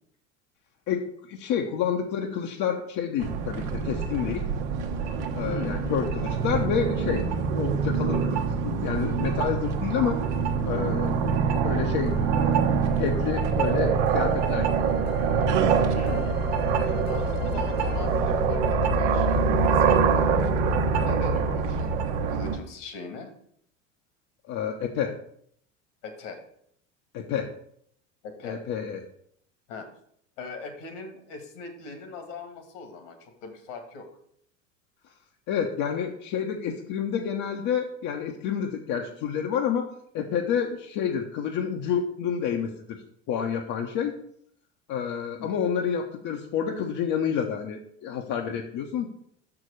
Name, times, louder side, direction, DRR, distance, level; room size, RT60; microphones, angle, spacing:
voice 1, 0.9-4.5 5.4-7.2 7.5-10.2 10.6-12.5 13.0-14.9 24.5-25.1 27.1-27.5 28.4-29.0 35.5-39.9 40.1-43.0 43.3-44.2 44.9-49.1, left 7 dB, 55° left, 2 dB, 1.0 m, -29 dB
sound 1, 3.2-22.6, right 5 dB, 70° right, 1.0 m, -25 dB
voice 2, 5.4-5.9 15.9-16.4 16.8-20.4 21.0-21.9 22.3-23.3 26.0-26.4 28.2-28.6 29.7-29.9 30.4-34.1 45.4-45.5, left 4 dB, 70° left, 6 dB, 2.0 m, -40 dB
sound 2, 10.1-20.5, equal, 90° left, 0.7 m, -41 dB
6.3 x 4.9 x 6.4 m, 0.68 s
hypercardioid pair, 85°, 37 cm